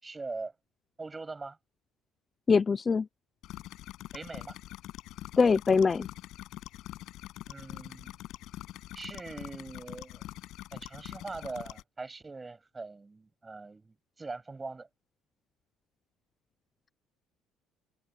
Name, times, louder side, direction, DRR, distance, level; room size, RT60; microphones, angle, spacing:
voice 1, 0.0-0.5 1.0-1.6 4.1-4.6 7.5-8.2 8.9-10.2 10.7-14.9, right 3 dB, 20° right, 7.6 m, -42 dB
voice 2, 2.5-3.1 5.4-6.1, left 5 dB, 25° left, 0.6 m, -23 dB
sound 1, 3.4-11.8, left 15 dB, 70° left, 6.1 m, -44 dB
cardioid pair, 125°, 0 cm